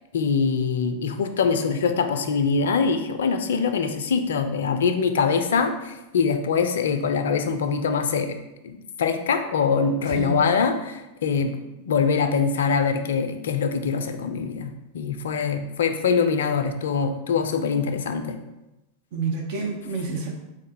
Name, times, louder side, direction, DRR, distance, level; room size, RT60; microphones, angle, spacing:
voice 1, 0.1-8.4 8.6-11.6 11.9-18.4, left 5 dB, 60° left, 7 dB, 0.4 m, -23 dB
voice 2, 10.1-10.5 19.1-20.4, right 4 dB, 50° right, 1 dB, 0.7 m, -28 dB
3.6 x 2.6 x 4.2 m, 0.98 s
figure-of-eight pair, 90°, 0 cm